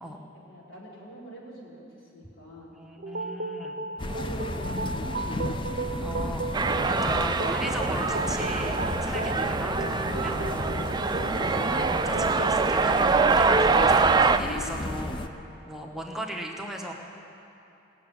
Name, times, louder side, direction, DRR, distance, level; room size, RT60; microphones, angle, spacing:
voice 1, 0.5-2.8 4.1-5.8, right 1 dB, 90° left, -5 dB, 3.9 m, -46 dB
voice 2, 2.8-3.8 6.0-10.4 11.5-16.9, equal, ahead, 0 dB, 1.1 m, -37 dB
sound 1, 3.0-14.0, right 3 dB, 50° right, 0.7 m, -35 dB
sound 2, 4.0-15.3, left 1 dB, 25° left, 0.6 m, -33 dB
sound 3, 6.5-14.4, right 4 dB, 20° right, 0.4 m, -24 dB
19.0 x 7.1 x 8.9 m, 2.8 s
head